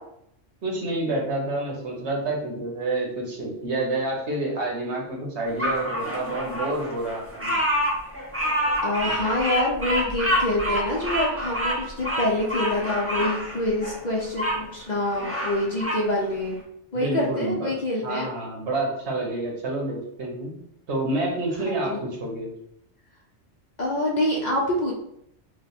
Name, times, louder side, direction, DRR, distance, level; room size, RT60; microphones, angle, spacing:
voice 1, 0.6-7.6 16.9-17.7 18.0-20.6 20.9-22.5, right 2 dB, 70° right, -1 dB, 1.2 m, -28 dB
Bird vocalization bird call bird song, 5.6-14.6 15.0-16.1, equal, 15° right, 0.5 m, -27 dB
voice 2, 8.8-16.6 16.9-18.3 21.7-22.0 23.8-24.9, left 1 dB, 50° left, -3 dB, 0.6 m, -26 dB
3.1 x 2.1 x 4.1 m, 0.75 s
omnidirectional pair, 1.2 m